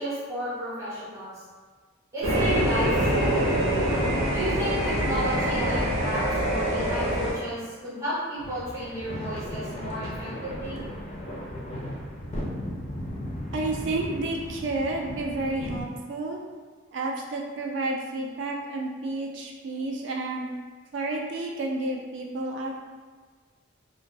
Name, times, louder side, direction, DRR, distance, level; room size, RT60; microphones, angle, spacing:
voice 1, 0.0-1.3 2.1-2.9 3.2-3.5 4.3-10.8, equal, 15° right, -10 dB, 0.7 m, -33 dB
sound 1, 2.2-7.3, right 1 dB, 85° right, 0.8 m, -24 dB
sound 2, 8.4-15.8, equal, 30° left, 0.3 m, -36 dB
voice 2, 13.5-16.4 16.9-20.5 20.9-22.7, right 2 dB, 60° right, 0 dB, 0.3 m, -30 dB
2.2 x 2.2 x 2.5 m, 1.5 s
head